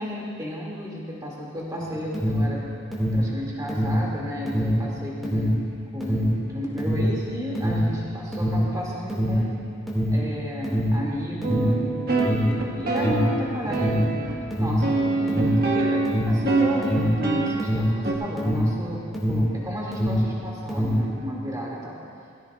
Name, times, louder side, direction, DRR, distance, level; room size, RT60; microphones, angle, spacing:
voice 1, 0.0-2.6 3.0-5.6 5.9-9.6 10.1-14.2 14.6-19.0 19.3-22.0, equal, 20° right, -5 dB, 2.5 m, -32 dB
Alarm, 1.8-19.6 19.8-21.1, equal, ahead, 2.3 m, -24 dB
sound 1, 11.4-14.4 14.8-17.6 18.0-18.1, right 3 dB, 50° right, 1.6 m, -25 dB
17.5 x 15.5 x 2.5 m, 2.3 s
head